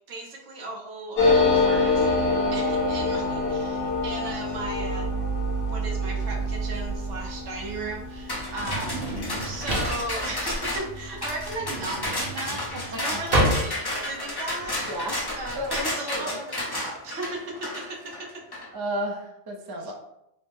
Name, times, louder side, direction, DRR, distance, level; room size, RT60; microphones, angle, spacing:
voice 1, 0.1-5.1 5.7-9.0 9.4-12.7 12.9-15.1 15.4-18.4 19.8-19.9, right 2 dB, 80° right, 0 dB, 1.1 m, -36 dB
sound 1, 1.2-10.3 10.6-10.7 10.9-11.5, left 2 dB, 60° left, 1.6 m, -26 dB
voice 2, 3.1-3.5 12.7-13.6 14.7-15.2 15.5-16.4 18.7-19.9, equal, 35° right, 0 dB, 0.4 m, -34 dB
Drawer open or close, 6.2-15.8, equal, 55° right, 1.1 m, -30 dB
sound 2, 8.3-18.7, left 1 dB, 25° left, 0.5 m, -32 dB
3.9 x 2.1 x 3.4 m, 0.83 s
omnidirectional pair, 1.2 m